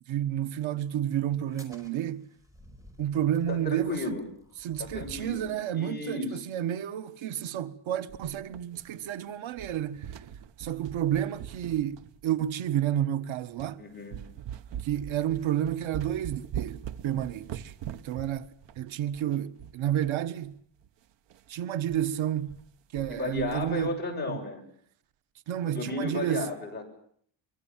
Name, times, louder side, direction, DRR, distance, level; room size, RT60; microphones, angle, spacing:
voice 1, 0.1-2.3 3.0-4.2 4.6-10.2 10.6-13.8 14.8-18.5 18.8-20.5 21.5-22.5 22.9-23.9 24.3-24.4 25.5-26.5, right 11 dB, 90° right, 1.5 m, -30 dB
sound 1, 1.4-5.6, equal, 5° right, 5.1 m, -52 dB
voice 2, 3.5-4.3 4.8-6.4 13.8-14.2 23.1-24.6 25.7-26.9, left 2 dB, 20° left, 7.1 m, -34 dB
sound 2, 8.1-9.2 9.5-12.5 13.1-13.2 13.6-13.8 14.1-20.2 20.4-20.5 20.8-20.9 21.3-21.5 21.9-22.0 22.3-22.7 23.0-23.9, right 10 dB, 65° right, 1.1 m, -42 dB
24.5 x 23.5 x 7.4 m
cardioid pair, 165°, 46 cm